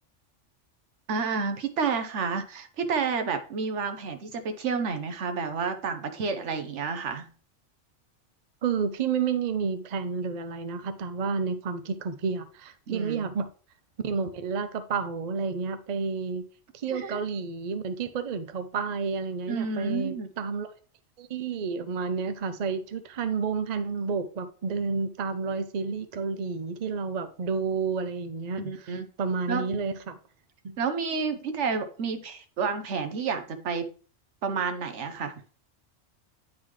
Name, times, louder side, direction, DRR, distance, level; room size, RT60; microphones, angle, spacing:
voice 1, 1.1-7.3 12.9-13.3 16.9-17.2 19.5-20.3 28.6-29.1 29.5-29.7 30.8-33.9 34.4-35.3, right 5 dB, 75° right, 8 dB, 1.1 m, -30 dB
voice 2, 8.6-13.5 14.0-16.5 16.7-20.7 21.2-28.9 29.2-30.2 30.6-30.8, right 5 dB, 45° right, 10 dB, 0.5 m, -30 dB
9.5 x 3.8 x 3.1 m, 0.39 s
omnidirectional pair, 1.2 m